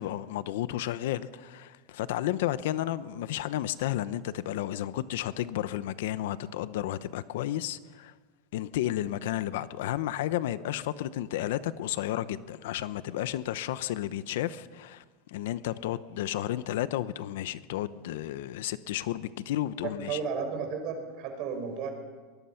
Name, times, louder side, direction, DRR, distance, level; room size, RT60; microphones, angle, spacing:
voice 1, 0.0-8.1 8.5-20.2, left 13 dB, 70° left, 0.9 m, -32 dB
voice 2, 19.8-21.9, right 6 dB, 40° right, 5.3 m, -33 dB
23.0 x 21.0 x 5.9 m
supercardioid pair, 165°, 0 cm